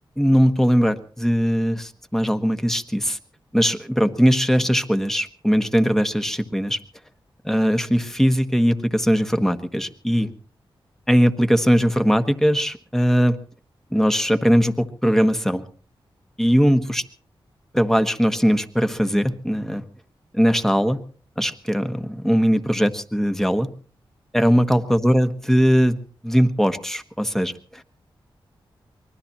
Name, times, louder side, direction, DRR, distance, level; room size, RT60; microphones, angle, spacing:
voice 1, 0.2-3.2 3.5-6.8 7.4-10.3 11.1-13.4 13.9-15.6 16.4-17.0 17.7-19.8 20.3-21.0 21.4-23.7 24.3-26.0 26.2-27.8, equal, 5° left, 8 dB, 1.5 m, -20 dB
25.0 x 19.5 x 3.0 m, 0.42 s
cardioid pair, 45°, 10 cm